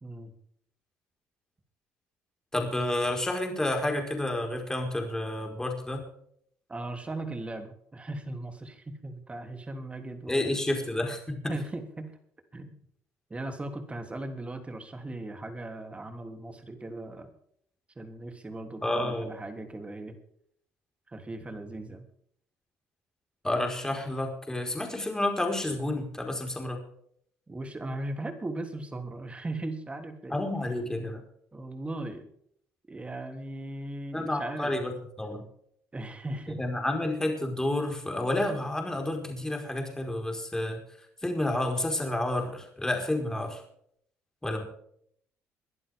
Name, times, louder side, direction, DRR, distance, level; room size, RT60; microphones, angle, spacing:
voice 1, 0.0-0.3 6.7-10.5 11.5-12.1 12.5-12.7 13.3-17.3 17.9-20.2 21.1-22.0 27.5-30.4 31.5-32.3 32.9-34.8 35.9-36.6, right 2 dB, 20° right, 6 dB, 3.2 m, -38 dB
voice 2, 2.5-6.1 10.3-11.6 18.8-19.3 23.4-26.8 30.3-31.2 34.1-34.9 35.2-35.4 36.6-40.8 41.2-43.6 44.4-44.7, left 1 dB, 10° left, 3 dB, 4.9 m, -30 dB
22.5 x 11.5 x 3.7 m, 0.66 s
cardioid pair, 85°, 6 cm